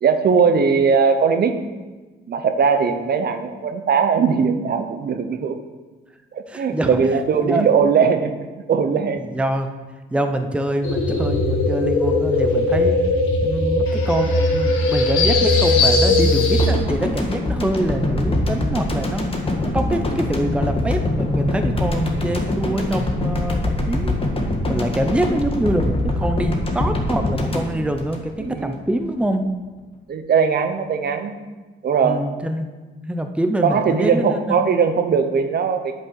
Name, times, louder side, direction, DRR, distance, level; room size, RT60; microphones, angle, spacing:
voice 1, 0.0-1.5 2.3-5.6 6.3-8.4 8.7-9.2 28.4-28.8 30.1-31.4 31.8-32.2 33.6-35.9, right 6 dB, 50° right, 8 dB, 0.8 m, -19 dB
voice 2, 6.5-7.0 7.4-7.7 9.2-9.7 10.1-13.0 13.4-19.3 19.7-23.6 23.9-24.1 24.7-29.4 32.0-32.7 33.0-34.6, right 1 dB, 5° right, 6 dB, 0.7 m, -24 dB
sound 1, 10.8-16.7, left 2 dB, 80° left, 1.7 m, -18 dB
sound 2, 16.6-28.8 29.0-29.2, left 1 dB, 30° left, 1.6 m, -23 dB
8.6 x 5.5 x 6.4 m, 1.3 s
cardioid pair, 90°, 20 cm